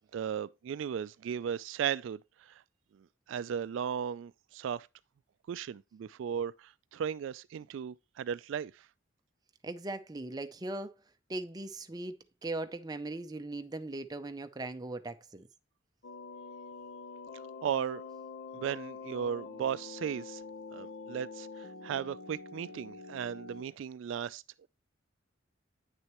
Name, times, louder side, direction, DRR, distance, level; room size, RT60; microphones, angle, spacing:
voice 1, 0.1-2.5 3.3-4.9 5.5-8.7 17.6-18.0 18.5-20.4 20.7-24.7, right 8 dB, 70° right, 0.3 m, -36 dB
voice 2, 9.6-10.9 11.3-12.1 12.4-15.5, right 2 dB, 20° right, 0.5 m, -39 dB
sound 1, 16.0-23.6, left 4 dB, 70° left, 0.8 m, -46 dB
9.1 x 6.4 x 3.0 m
head